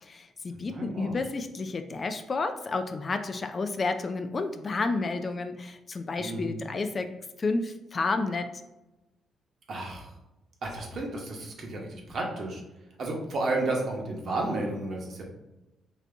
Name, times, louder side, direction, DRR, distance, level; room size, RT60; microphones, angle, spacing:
voice 1, 0.0-8.5, left 3 dB, 35° left, 7 dB, 0.4 m, -31 dB
voice 2, 0.5-1.2 6.2-6.5 9.7-10.1 10.6-12.6 13.0-15.2, right 2 dB, 55° right, 0 dB, 1.0 m, -32 dB
3.9 x 2.7 x 3.4 m, 0.98 s
cardioid pair, 90°, 0 cm